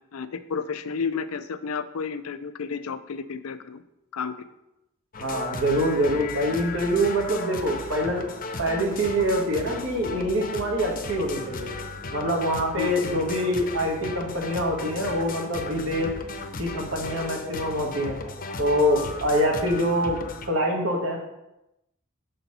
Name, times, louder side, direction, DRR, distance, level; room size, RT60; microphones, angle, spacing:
voice 1, 0.1-3.8 4.1-4.5 12.8-13.0, left 5 dB, 90° left, 12 dB, 0.5 m, -31 dB
sound 1, 5.1-20.5, left 3 dB, 45° left, 0.7 m, -36 dB
voice 2, 5.2-8.3 8.6-11.7 12.1-16.1 16.6-18.2 18.6-20.2 20.5-21.2, equal, 65° right, 0 dB, 1.5 m, -25 dB
6.8 x 4.3 x 5.4 m, 0.90 s
head